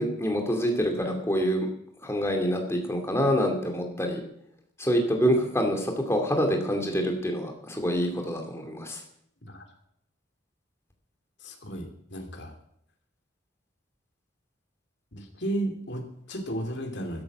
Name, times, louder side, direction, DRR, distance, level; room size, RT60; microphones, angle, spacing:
voice 1, 0.0-1.7 2.0-4.2 4.8-9.0, equal, 15° left, 3 dB, 2.5 m, -26 dB
voice 2, 11.4-12.5 15.1-17.2, right 1 dB, 60° left, 4 dB, 2.8 m, -34 dB
13.0 x 11.5 x 7.4 m, 0.73 s
head